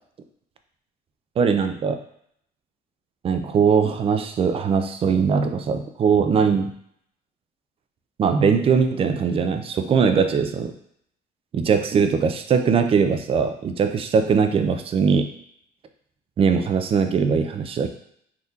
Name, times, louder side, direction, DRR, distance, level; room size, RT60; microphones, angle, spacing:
voice 1, 1.4-2.0 3.2-6.7 8.2-10.7 11.5-15.3 16.4-17.9, right 6 dB, 35° right, 8 dB, 0.4 m, -20 dB
3.5 x 2.5 x 2.8 m, 0.68 s
cardioid pair, 110°, 17 cm